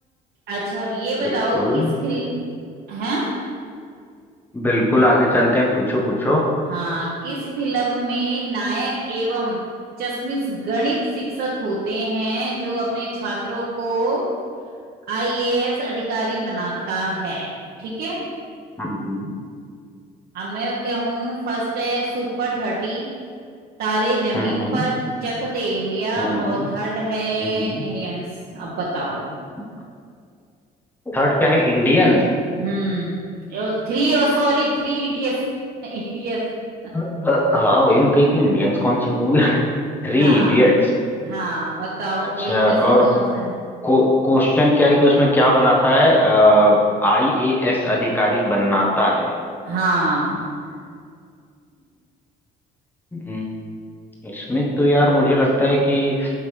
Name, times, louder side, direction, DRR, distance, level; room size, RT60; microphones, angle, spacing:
voice 1, 0.5-2.2 2.9-3.3 6.7-9.6 10.0-14.2 15.1-17.5 17.8-18.2 20.3-23.0 23.8-28.2 28.5-29.2 32.6-33.2 33.5-35.4 35.8-36.4 40.1-40.6 41.2-43.4 49.6-50.5, right 2 dB, 70° right, -6 dB, 1.2 m, -24 dB
voice 2, 1.2-2.0 4.5-6.4 18.8-19.3 24.3-24.9 26.2-26.6 27.4-27.8 31.1-32.2 36.9-39.6 40.0-40.9 42.4-43.1 43.8-49.3 53.1-53.5 54.2-56.3, left 1 dB, 10° left, -4 dB, 1.3 m, -18 dB
10.0 x 3.7 x 3.3 m, 2.2 s
cardioid pair, 110°, 17 cm